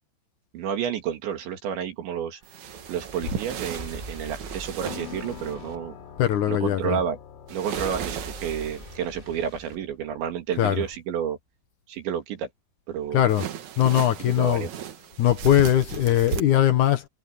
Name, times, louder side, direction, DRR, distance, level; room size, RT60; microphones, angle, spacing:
voice 1, 0.5-2.4 2.9-6.0 6.5-7.2 7.5-11.4 11.9-12.5 12.9-13.2 14.2-14.7, right 8 dB, 80° right, 4.8 m, -30 dB
sound 1, 2.4-5.5 7.5-9.0 13.3-16.4, right 8 dB, 60° right, 2.0 m, -36 dB
sound 2, 2.5-6.6 7.7-10.6, right 1 dB, 20° right, 1.4 m, -42 dB
sound 3, 3.2-3.7 4.3-4.4 4.8-9.5, left 8 dB, 85° left, 4.5 m, -42 dB
voice 2, 6.2-7.0 10.6-10.9 13.1-13.5 13.8-14.7 15.2-17.1, left 12 dB, 70° left, 1.9 m, -21 dB
omnidirectional pair, 5.1 m